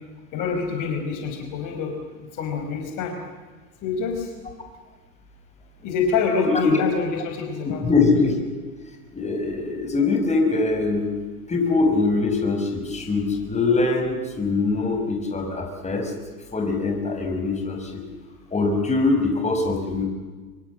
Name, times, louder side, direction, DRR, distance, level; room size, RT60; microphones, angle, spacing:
voice 1, 0.3-3.1 3.8-4.3 5.8-7.8, left 5 dB, 45° left, 3 dB, 5.1 m, -26 dB
voice 2, 6.4-6.8 7.8-8.5 9.1-11.1 11.5-16.1 16.5-18.0 18.5-20.0, left 3 dB, 15° left, 3 dB, 6.1 m, -22 dB
25.5 x 23.0 x 7.6 m, 1.4 s
hypercardioid pair, 95°, 44 cm